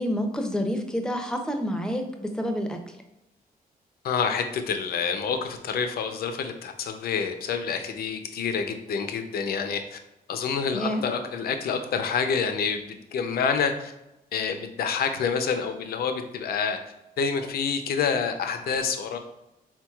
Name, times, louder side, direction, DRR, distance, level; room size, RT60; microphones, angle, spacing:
voice 1, 0.0-2.9 10.7-11.0, equal, 5° left, 4 dB, 0.5 m, -28 dB
voice 2, 4.0-10.0 10.3-13.9 14.3-16.8 17.2-19.2, left 6 dB, 75° left, 7 dB, 0.5 m, -27 dB
4.5 x 3.7 x 2.3 m, 0.92 s
cardioid pair, 115°, 16 cm